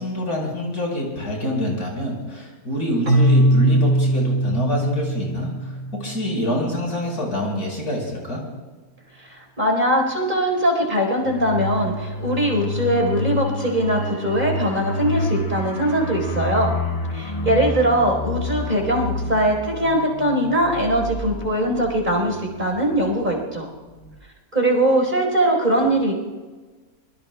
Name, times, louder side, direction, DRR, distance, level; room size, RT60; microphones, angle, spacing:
voice 1, 0.0-8.4, equal, 75° left, -1 dB, 5.4 m, -26 dB
Keyboard (musical), 3.1-6.8, right 1 dB, 65° right, 3.5 m, -20 dB
voice 2, 9.2-16.7 17.1-23.7 24.5-26.1, right 1 dB, 30° right, 0 dB, 4.4 m, -21 dB
sound 1, 11.2-23.6 23.9-24.1, left 1 dB, 45° left, 1.6 m, -29 dB
25.0 x 23.0 x 2.3 m, 1.3 s
omnidirectional pair, 1.6 m